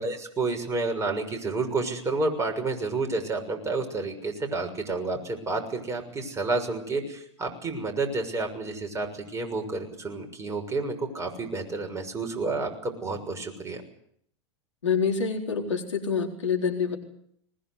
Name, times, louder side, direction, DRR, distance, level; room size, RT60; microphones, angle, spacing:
voice 1, 0.0-13.8, right 3 dB, 20° right, 4 dB, 6.4 m, -30 dB
voice 2, 14.8-17.0, left 6 dB, 80° left, 2 dB, 3.9 m, -26 dB
21.0 x 20.5 x 8.2 m, 0.67 s
figure-of-eight pair, 90°, 15 cm